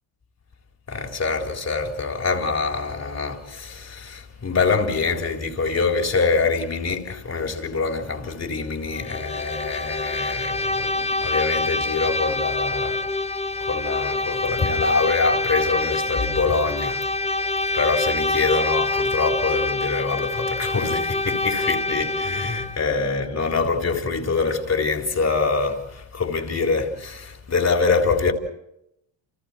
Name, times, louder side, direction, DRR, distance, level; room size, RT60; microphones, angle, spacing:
voice 1, 0.9-13.0 13.6-17.1 17.7-28.3, left 4 dB, 30° left, 4.0 m, -25 dB
Bowed string instrument, 9.0-22.9, left 2 dB, 15° left, 0.9 m, -26 dB
29.5 x 29.0 x 4.6 m
cardioid pair, 105°, 48 cm